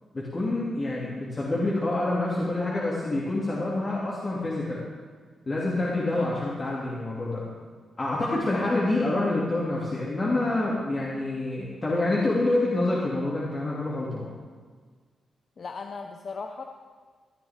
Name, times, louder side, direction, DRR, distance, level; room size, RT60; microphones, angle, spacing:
voice 1, 0.1-4.8 5.5-7.4 8.0-14.3, left 2 dB, 40° left, -6 dB, 2.5 m, -27 dB
voice 2, 15.6-16.6, left 4 dB, 55° left, 4 dB, 0.7 m, -37 dB
15.5 x 9.6 x 3.7 m, 1.6 s
supercardioid pair, 50°, 0 cm